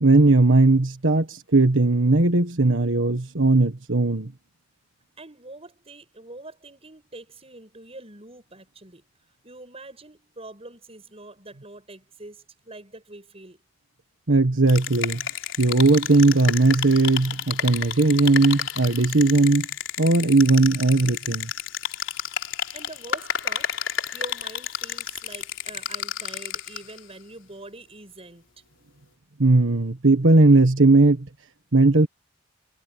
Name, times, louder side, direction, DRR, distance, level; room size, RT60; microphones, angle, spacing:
voice 1, 0.0-4.3 14.3-15.2 15.6-19.7 20.0-21.5 29.4-31.3 31.7-32.1, right 2 dB, 85° right, 1.5 m, -18 dB
voice 2, 5.2-9.0 9.4-13.6 22.7-23.8 24.1-28.5, right 2 dB, 30° right, 7.8 m, -44 dB
sound 1, 14.7-27.0, left 9 dB, 90° left, 3.6 m, -31 dB
head